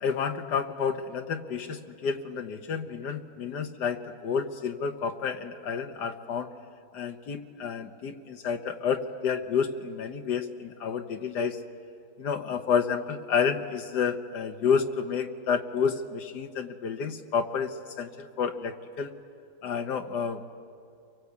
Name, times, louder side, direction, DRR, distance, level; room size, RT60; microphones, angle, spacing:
voice 1, 0.0-6.5 6.9-11.6 12.2-19.1 19.6-20.5, left 6 dB, 80° left, 6 dB, 1.6 m, -30 dB
29.5 x 24.0 x 8.3 m, 2.4 s
omnidirectional pair, 1.8 m